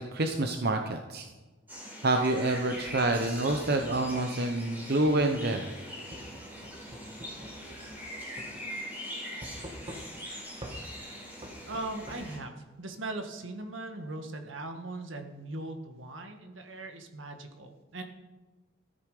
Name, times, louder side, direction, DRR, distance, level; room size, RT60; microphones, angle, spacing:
voice 1, 0.1-1.3 2.0-5.7, right 2 dB, 55° right, 5 dB, 0.9 m, -27 dB
sound 1, 1.7-12.4, equal, 10° right, 5.2 m, -42 dB
sound 2, 2.8-4.1 5.1-5.2 6.1-8.1 8.4-8.5 9.4-10.3 10.6-10.8 11.4-12.2, equal, 30° right, 1.8 m, -45 dB
voice 2, 11.7-18.0, right 2 dB, 80° right, 5 dB, 1.7 m, -39 dB
14.0 x 12.5 x 5.0 m, 1.2 s
head